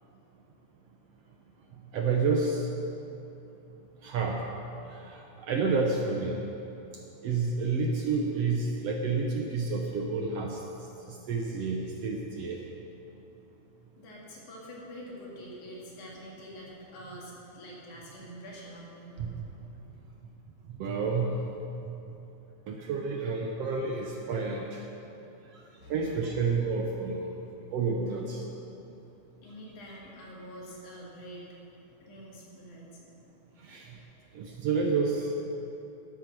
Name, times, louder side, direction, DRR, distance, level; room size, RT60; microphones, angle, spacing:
voice 1, 1.9-2.7 4.0-4.4 4.9-6.4 7.2-10.6 11.1-12.6 19.2-19.4 20.8-21.5 21.8-21.9 22.7-24.8 25.5-25.6 25.9-27.3 27.7-28.4 33.6-33.9 34.3-35.3, right 4 dB, 65° right, 1 dB, 1.6 m, -29 dB
voice 2, 14.0-19.4 25.8-26.0 29.4-31.5 32.0-33.1, equal, 75° left, -4 dB, 3.7 m, -46 dB
12.5 x 10.5 x 6.1 m, 3.0 s
omnidirectional pair, 3.6 m